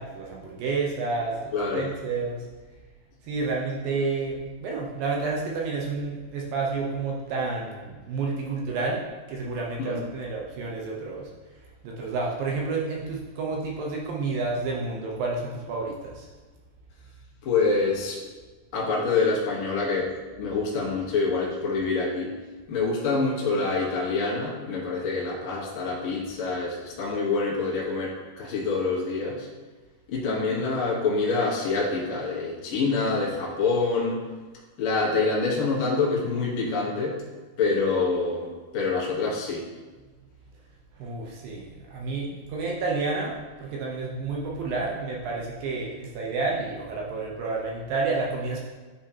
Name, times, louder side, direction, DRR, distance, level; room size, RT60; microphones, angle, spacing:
voice 1, 0.0-2.4 3.2-9.0 9.3-11.3 11.8-16.3 41.0-48.6, right 3 dB, 75° right, -2 dB, 2.3 m, -30 dB
voice 2, 1.5-1.9 9.8-10.0 17.4-18.2 18.7-20.1 20.4-22.3 22.7-29.5 30.1-34.2 34.8-37.2 37.6-39.6, left 4 dB, 85° left, -5 dB, 1.1 m, -26 dB
10.0 x 3.6 x 2.8 m, 1.3 s
omnidirectional pair, 4.6 m